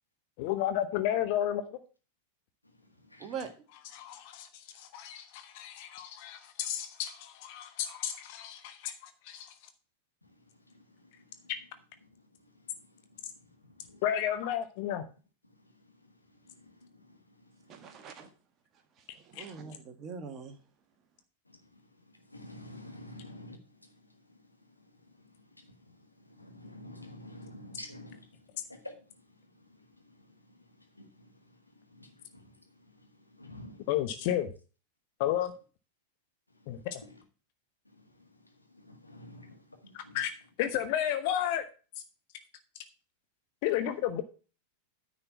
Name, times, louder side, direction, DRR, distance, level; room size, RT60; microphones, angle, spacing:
voice 1, 0.4-1.8 3.9-9.5 14.0-15.0 19.4-19.5 33.9-34.5 35.2-35.5 36.7-37.0 39.9-40.3 40.6-41.6 43.6-44.2, left 11 dB, 45° left, 0.8 m, -32 dB
voice 2, 3.2-3.5 17.7-18.3 19.0-20.6, right 6 dB, 30° right, 1.4 m, -42 dB
voice 3, 12.6-13.2 13.8-14.0 16.4-17.9 21.5-21.8 22.3-23.9 24.3-24.4 25.2-25.3 25.5-28.3 28.7-29.2 30.0-30.6 30.9-31.6 31.9-33.8 37.9-38.3 38.7-40.2, left 1 dB, 85° left, 1.7 m, -50 dB
9.8 x 4.1 x 6.9 m
figure-of-eight pair, 90°, 0 cm